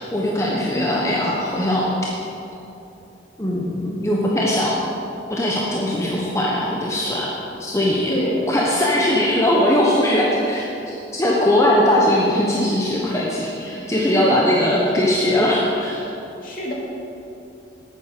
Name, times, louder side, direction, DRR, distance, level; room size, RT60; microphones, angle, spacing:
voice 1, 0.0-1.9 3.4-4.8 5.3-7.3 7.6-8.1 8.5-16.0, left 1 dB, 15° left, -4 dB, 1.1 m, -20 dB
voice 2, 0.7-1.1 8.1-8.5 14.1-14.4 16.4-16.7, equal, 50° left, -4 dB, 2.6 m, -25 dB
10.5 x 9.3 x 6.7 m, 2.9 s
head